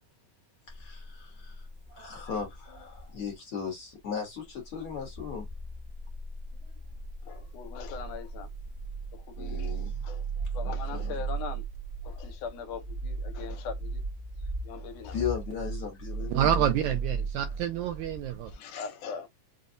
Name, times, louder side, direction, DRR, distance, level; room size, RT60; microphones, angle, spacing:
voice 1, 0.7-5.5 6.6-6.7 9.4-10.0 10.6-11.1 15.1-16.6 18.3-18.6, left 6 dB, 60° left, 1.5 m, -37 dB
sound 1, 0.7-3.3 4.5-18.5, right 4 dB, 45° right, 1.0 m, -37 dB
voice 2, 7.2-8.5 9.1-9.7 10.0-10.3 10.5-11.6 12.0-14.0 14.6-15.2 18.5-19.3, left 6 dB, 75° left, 2.1 m, -40 dB
voice 3, 16.3-18.5, right 10 dB, 80° right, 1.7 m, -28 dB
5.2 x 2.2 x 2.5 m
omnidirectional pair, 3.7 m